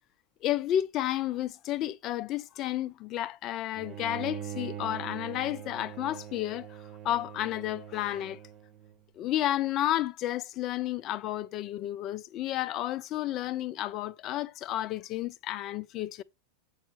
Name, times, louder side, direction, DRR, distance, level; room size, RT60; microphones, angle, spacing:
voice 1, 0.4-8.4 9.2-16.2, left 13 dB, 35° left, 0.4 m, -32 dB
Bowed string instrument, 3.7-9.0, right 11 dB, 30° right, 0.7 m, -42 dB
7.2 x 4.8 x 3.4 m
figure-of-eight pair, 90°, 0 cm